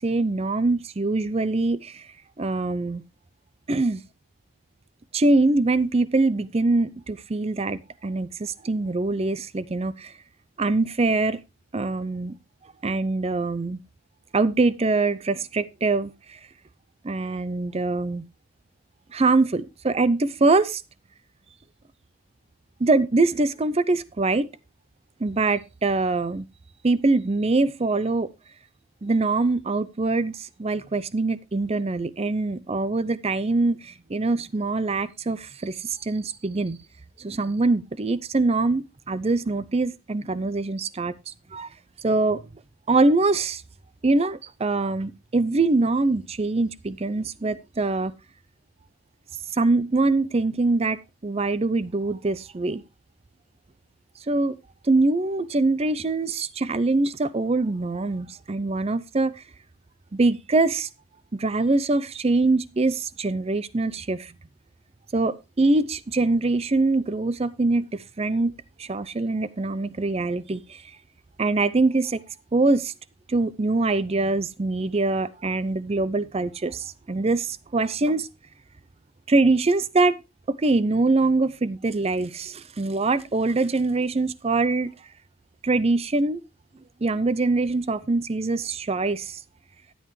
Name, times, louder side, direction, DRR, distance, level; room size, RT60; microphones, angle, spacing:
voice 1, 0.0-2.1 2.4-3.0 3.7-4.0 5.1-10.1 10.6-11.4 11.7-12.3 12.8-13.8 14.3-16.4 17.0-18.3 19.1-20.8 22.8-24.5 25.2-26.5 26.8-28.3 29.0-36.8 37.2-41.7 42.0-42.4 42.9-43.6 44.0-48.1 49.5-52.8 54.3-54.6 54.8-59.4 60.1-60.9 61.3-64.3 65.1-68.5 68.8-70.8 71.4-72.2 72.5-72.9 73.3-78.3 79.3-80.2 80.5-84.9 85.6-86.4 87.0-89.4, right 3 dB, 25° right, 0.5 m, -23 dB
13.0 x 8.8 x 3.2 m
head